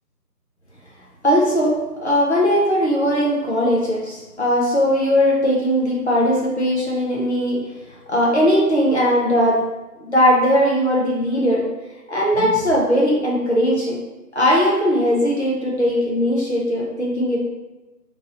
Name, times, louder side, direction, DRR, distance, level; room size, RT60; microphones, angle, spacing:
voice 1, 1.2-7.6 8.1-9.6 10.0-11.6 12.1-14.0 14.4-17.4, equal, 45° left, -4 dB, 0.4 m, -19 dB
2.8 x 2.6 x 2.8 m, 1.1 s
figure-of-eight pair, 165°, 50 cm